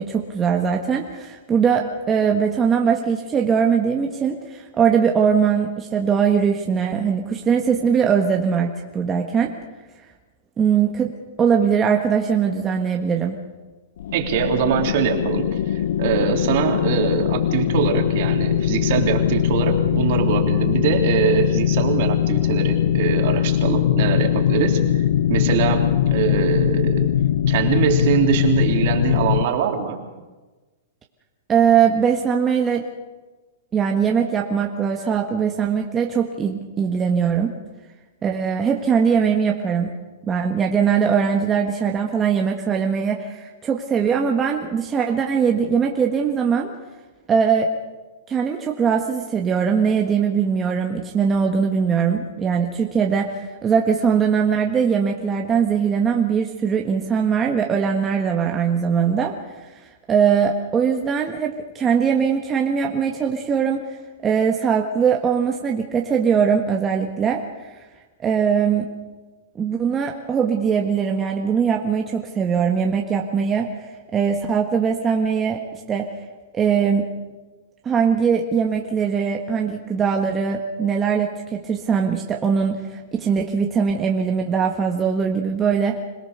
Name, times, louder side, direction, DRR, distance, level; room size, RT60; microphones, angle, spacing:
voice 1, 0.0-9.5 10.6-11.1 11.4-13.4 31.5-32.8 33.7-37.5 38.2-39.9 40.2-46.7 47.3-47.7 48.3-59.3 60.1-63.8 64.2-67.4 68.2-68.9 69.5-75.6 75.9-76.1 76.5-77.1 77.8-86.0, right 7 dB, 20° right, 1 dB, 1.5 m, -21 dB
sound 1, 14.0-29.5, left 10 dB, 70° left, 0.8 m, -21 dB
voice 2, 14.1-25.0 25.3-27.1 27.5-30.0, right 8 dB, 55° right, 3 dB, 3.4 m, -23 dB
26.0 x 18.0 x 6.8 m, 1.2 s
hypercardioid pair, 145°, 0 cm